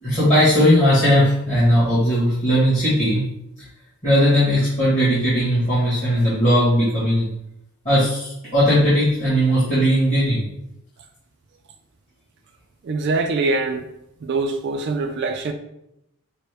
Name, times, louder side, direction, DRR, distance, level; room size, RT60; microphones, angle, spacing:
voice 1, 0.0-3.2 4.0-7.2 7.8-10.4, equal, 30° left, 1.4 m, -18 dB
voice 2, 12.8-13.9 14.2-15.5, right 3 dB, 50° right, 0.3 m, -23 dB
5.1 x 2.1 x 3.3 m
head